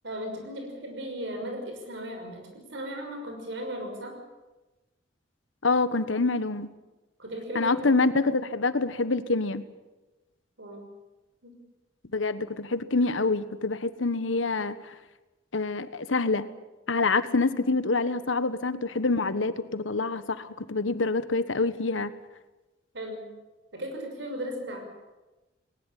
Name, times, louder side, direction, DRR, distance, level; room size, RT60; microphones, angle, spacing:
voice 1, 0.0-4.1 7.2-7.8 10.6-10.8 11.4-11.6 22.9-23.2 23.7-24.9, equal, 65° right, 4 dB, 6.1 m, -36 dB
voice 2, 5.6-6.7 7.5-9.6 12.1-14.9 15.5-16.5 16.9-22.1, left 3 dB, 85° left, 13 dB, 1.3 m, -26 dB
20.0 x 19.5 x 9.0 m, 1.1 s
head